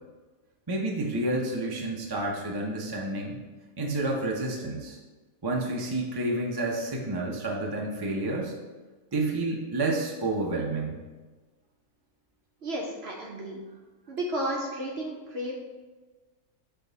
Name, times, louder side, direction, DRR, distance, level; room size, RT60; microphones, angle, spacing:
voice 1, 0.7-3.4 3.8-5.0 5.4-8.5 9.1-11.0, right 2 dB, 25° right, -1 dB, 0.5 m, -29 dB
voice 2, 12.6-13.6 14.1-15.5, right 1 dB, 55° right, -1 dB, 0.8 m, -32 dB
6.9 x 3.4 x 4.0 m, 1.3 s
omnidirectional pair, 1.6 m